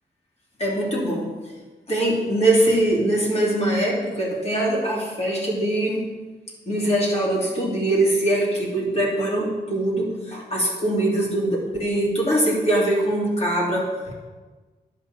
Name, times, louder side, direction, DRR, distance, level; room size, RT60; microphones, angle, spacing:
voice 1, 0.6-1.3 1.9-6.1 6.7-14.1, right 1 dB, 35° left, -3 dB, 2.9 m, -22 dB
10.5 x 5.6 x 7.5 m, 1.3 s
wide cardioid pair, 155°, 18 cm